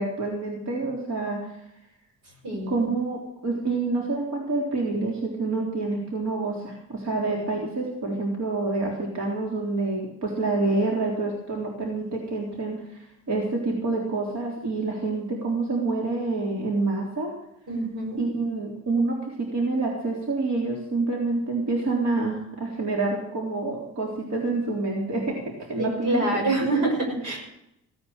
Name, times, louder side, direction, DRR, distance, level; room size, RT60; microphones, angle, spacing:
voice 1, 0.0-1.6 2.7-17.3 18.2-25.4 25.7-26.5, right 3 dB, 65° right, -1 dB, 3.7 m, -27 dB
voice 2, 2.4-2.9 7.1-7.2 17.7-18.2 25.8-27.4, right 2 dB, 85° right, 1 dB, 5.7 m, -26 dB
16.5 x 9.8 x 6.6 m, 0.80 s
cardioid pair, 90°, 30 cm